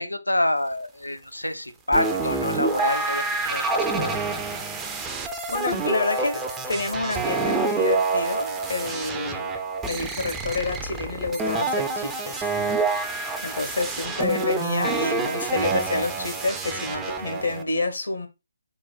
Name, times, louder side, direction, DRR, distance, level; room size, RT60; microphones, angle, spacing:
voice 1, 0.0-4.1, left 1 dB, 90° left, 0.5 m, -27 dB
sound 1, 1.9-17.6, right 3 dB, 10° right, 0.4 m, -27 dB
voice 2, 5.5-6.4 6.7-9.6 9.9-12.5 13.4-18.3, left 3 dB, 65° left, 0.9 m, -28 dB
4.0 x 2.1 x 4.2 m
figure-of-eight pair, 145°, 0 cm